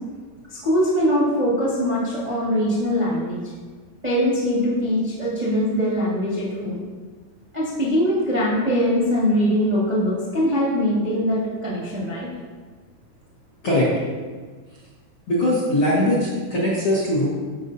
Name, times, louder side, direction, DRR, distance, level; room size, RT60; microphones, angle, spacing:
voice 1, 0.5-3.5 4.0-6.8 7.5-12.3, equal, 85° right, -9 dB, 0.3 m, -22 dB
voice 2, 15.3-17.3, left 1 dB, 75° left, -7 dB, 1.2 m, -20 dB
14.5 x 5.7 x 2.7 m, 1.5 s
omnidirectional pair, 4.8 m